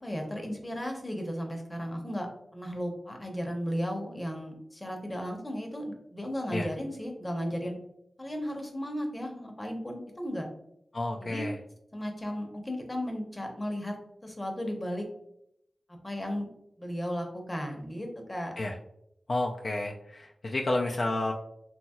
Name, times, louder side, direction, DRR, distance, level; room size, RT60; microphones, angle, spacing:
voice 1, 0.0-2.3 2.5-7.8 8.2-10.5 11.2-11.5 11.9-13.9 14.2-15.0 16.0-16.5 16.8-18.5, equal, 25° left, 2 dB, 0.7 m, -35 dB
voice 2, 10.9-11.6 18.6-18.7 19.3-21.3, left 2 dB, 60° left, 0 dB, 0.3 m, -30 dB
2.8 x 2.8 x 2.3 m, 0.76 s
cardioid pair, 55°, 0 cm